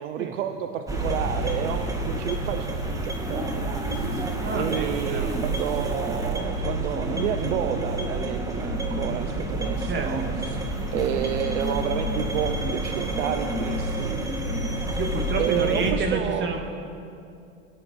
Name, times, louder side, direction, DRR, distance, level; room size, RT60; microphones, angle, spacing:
voice 1, 0.0-10.6 10.9-14.2 15.4-16.5, right 9 dB, 85° right, 7 dB, 0.9 m, -30 dB
sound 1, 0.9-15.9, right 1 dB, 10° right, 2.1 m, -29 dB
voice 2, 4.4-5.4 9.9-10.4 15.0-16.6, right 4 dB, 30° right, 3 dB, 2.2 m, -29 dB
22.5 x 10.5 x 4.7 m, 2.5 s
hypercardioid pair, 95°, 36 cm